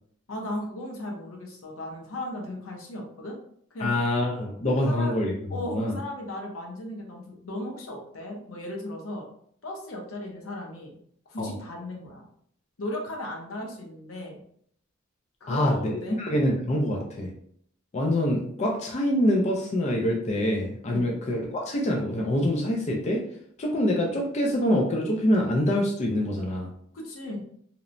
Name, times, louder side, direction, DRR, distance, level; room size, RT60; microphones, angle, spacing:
voice 1, 0.3-3.4 3.7-4.0 4.8-5.1 5.5-9.3 9.6-10.9 11.3-12.2 12.8-14.4 15.4-16.2 16.9-17.1 20.9-21.2 26.9-27.4, left 1 dB, 80° left, 0 dB, 0.7 m, -36 dB
voice 2, 3.8-5.3 5.7-5.9 11.4-11.5 15.5-17.3 17.9-23.2 23.6-26.7, left 1 dB, 35° left, -1 dB, 0.4 m, -25 dB
2.9 x 2.0 x 2.5 m, 0.66 s
head